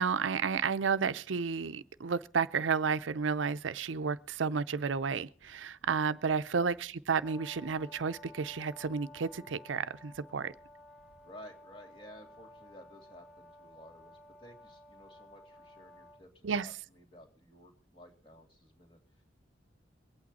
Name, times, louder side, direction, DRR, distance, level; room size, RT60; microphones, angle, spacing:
voice 1, 0.0-10.5 16.4-16.7, right 5 dB, 85° right, 0.5 m, -32 dB
sound 1, 5.4-5.5 5.8-6.0 6.3-6.4 6.7-6.8 7.1-7.2 7.5-8.1 8.4-8.5 8.8-9.0 9.3-9.4 9.7-9.8 10.1-10.2 10.5-10.7 11.0-11.2, right 1 dB, 80° left, 4.1 m, -68 dB
Brass instrument, 7.2-16.2, left 2 dB, ahead, 0.8 m, -54 dB
voice 2, 11.2-19.2, equal, 25° left, 2.6 m, -54 dB
23.5 x 8.7 x 4.1 m
head